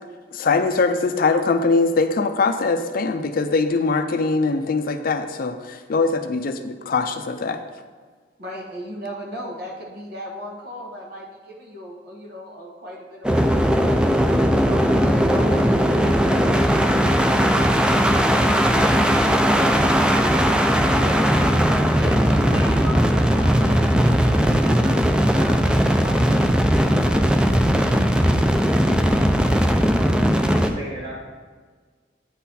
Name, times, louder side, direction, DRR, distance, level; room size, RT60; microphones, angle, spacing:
voice 1, 0.3-7.6, left 4 dB, 55° left, 8 dB, 0.4 m, -22 dB
voice 2, 8.4-14.0 14.5-16.6 16.9-28.2, equal, 65° right, -2 dB, 1.2 m, -37 dB
sound 1, 13.2-30.7, equal, 5° right, 0.4 m, -18 dB
voice 3, 30.3-31.3, right 1 dB, 30° right, -5 dB, 2.1 m, -36 dB
9.2 x 4.0 x 4.1 m, 1.5 s
head